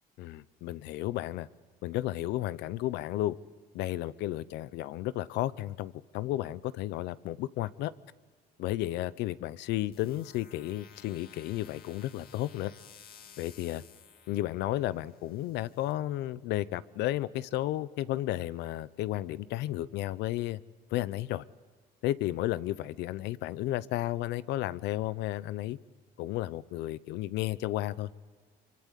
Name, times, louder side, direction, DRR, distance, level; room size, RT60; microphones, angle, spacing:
voice 1, 0.2-1.5 1.8-3.4 3.7-7.9 8.6-12.7 13.4-13.8 14.3-20.6 20.9-21.4 22.0-25.8 26.2-28.1, left 15 dB, 85° left, 17 dB, 0.8 m, -33 dB
sound 1, 9.9-15.9, left 8 dB, 65° left, 2.3 m, -55 dB
25.5 x 24.5 x 8.3 m, 1.5 s
cardioid pair, 110°, 17 cm